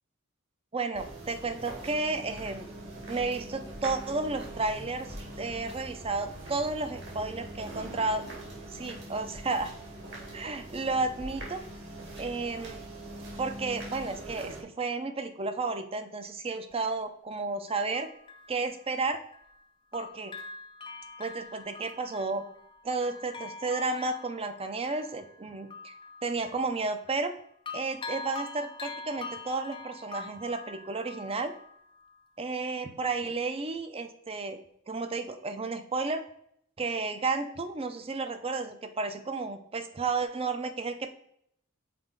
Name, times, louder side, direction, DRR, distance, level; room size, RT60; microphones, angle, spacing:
voice 1, 0.7-2.7 3.1-8.3 8.7-9.7 10.3-11.6 12.2-12.8 13.4-18.1 18.5-19.2 19.9-20.3 21.2-22.4 22.8-25.9 26.2-27.3 27.7-31.5 32.4-34.6 34.9-36.2 36.8-41.2, right 3 dB, 30° right, 8 dB, 0.6 m, -32 dB
sound 1, 0.9-14.6, right 1 dB, 60° right, 2.0 m, -42 dB
Bell, 16.7-16.8 17.7-19.6 19.9-27.4 27.7-32.3 32.7-32.8, left 3 dB, 25° left, 0.4 m, -45 dB
5.9 x 4.4 x 3.8 m, 0.70 s
head